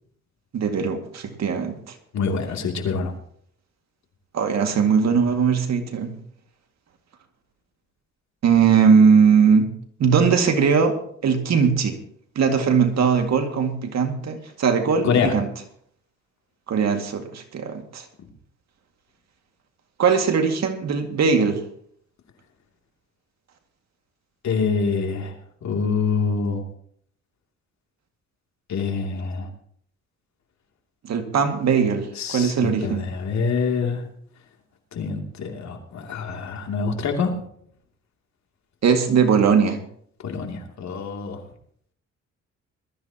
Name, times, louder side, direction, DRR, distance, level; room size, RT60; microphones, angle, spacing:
voice 1, 0.5-1.9 4.3-6.1 8.4-9.7 10.0-11.0 11.2-12.0 12.4-15.5 16.7-18.0 20.0-21.6 31.0-33.0 38.8-39.8, right 6 dB, 60° right, 5 dB, 2.2 m, -20 dB
voice 2, 2.1-3.1 15.0-15.3 24.4-25.3 25.6-26.6 28.7-29.5 32.2-34.0 34.9-37.3 40.2-41.4, left 5 dB, 65° left, 2 dB, 2.9 m, -25 dB
21.0 x 13.5 x 3.0 m, 0.64 s
cardioid pair, 90°, 30 cm